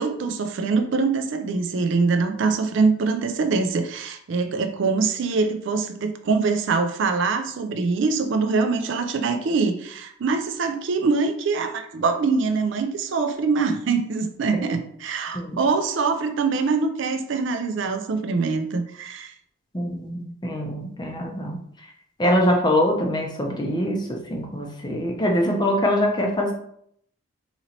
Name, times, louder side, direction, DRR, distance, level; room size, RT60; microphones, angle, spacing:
voice 1, 0.0-19.3, right 4 dB, 60° right, 8 dB, 0.3 m, -24 dB
voice 2, 19.7-21.9 22.2-26.5, left 1 dB, 20° left, 1 dB, 0.5 m, -24 dB
3.9 x 3.0 x 2.8 m, 0.69 s
head